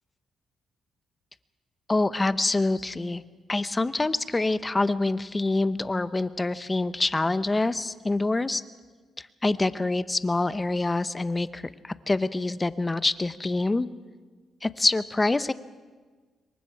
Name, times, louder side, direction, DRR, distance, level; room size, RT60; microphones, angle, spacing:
voice 1, 1.9-3.2 3.5-8.6 9.2-13.9 14.6-15.5, left 2 dB, 20° left, 14 dB, 0.8 m, -26 dB
26.5 x 23.0 x 4.7 m, 1.4 s
cardioid pair, 100°, 0 cm